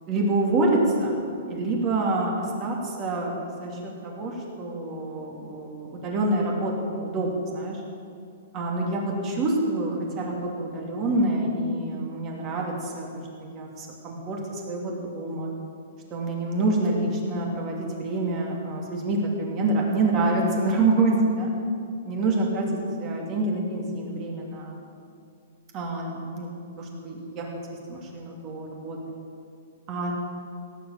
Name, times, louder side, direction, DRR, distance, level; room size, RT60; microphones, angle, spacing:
voice 1, 0.1-1.2 1.5-7.8 8.5-15.5 16.1-21.5 22.0-24.8 25.7-27.5 27.9-29.0 29.9-30.1, right 2 dB, 25° right, -1 dB, 2.8 m, -27 dB
17.5 x 8.3 x 8.7 m, 2.3 s
hypercardioid pair, 165°, 0 cm